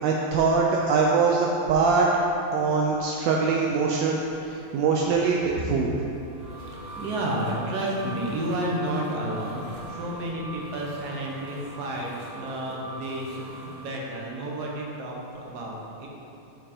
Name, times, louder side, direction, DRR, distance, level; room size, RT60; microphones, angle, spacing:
voice 1, 0.0-2.1 2.5-4.2 4.5-5.9, right 4 dB, 75° right, -1 dB, 1.1 m, -23 dB
sound 1, 5.9-13.9, right 1 dB, 35° right, 0.7 m, -42 dB
voice 2, 6.6-16.1, right 1 dB, 55° right, -2 dB, 1.3 m, -31 dB
6.1 x 4.6 x 4.2 m, 2.8 s
omnidirectional pair, 2.4 m